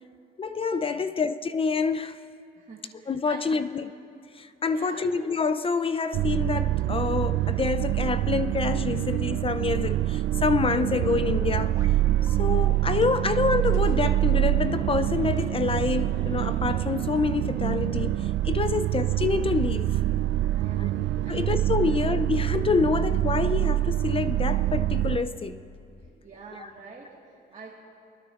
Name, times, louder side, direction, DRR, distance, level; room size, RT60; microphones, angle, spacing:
voice 1, 0.4-2.2 3.1-3.9 4.3-11.8 12.3-20.0 20.8-20.9 21.3-25.6 26.6-26.7, left 5 dB, 30° left, 0.4 m, -27 dB
voice 2, 2.5-3.7 4.4-5.1 18.7-19.1 20.5-22.0 26.1-27.8, right 4 dB, 35° right, 1.5 m, -47 dB
sound 1, 6.1-25.2, right 14 dB, 70° right, 0.4 m, -25 dB
sound 2, 11.4-16.9, right 1 dB, 10° left, 3.1 m, -48 dB
sound 3, 11.7-12.0 12.2-12.3 13.0-13.1 13.6-14.1 15.4-15.8 17.0-17.7, right 3 dB, 15° right, 1.5 m, -50 dB
25.0 x 9.6 x 2.4 m
cardioid pair, 90°, 20 cm